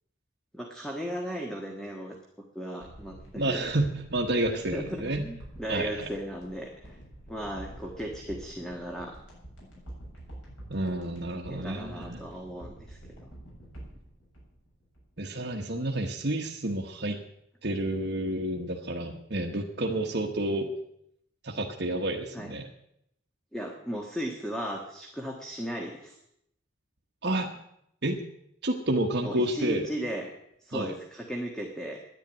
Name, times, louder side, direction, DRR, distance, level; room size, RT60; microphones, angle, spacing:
voice 1, 0.5-2.1 2.5-3.6 4.5-7.0 7.3-9.1 11.5-13.3 22.3-22.5 23.5-26.2 29.2-30.3 30.6-32.0, equal, 5° left, 0 dB, 1.6 m, -36 dB
sound 1, 2.8-15.3 15.6-15.7, right 1 dB, 70° left, 7.0 m, -47 dB
voice 2, 3.3-5.3 5.7-6.1 10.7-12.3 15.2-17.2 17.6-20.7 21.4-22.7 27.2-27.5 28.0-28.2 28.6-29.8 30.7-30.9, right 1 dB, 55° right, -1 dB, 1.3 m, -30 dB
10.5 x 10.5 x 9.2 m, 0.76 s
head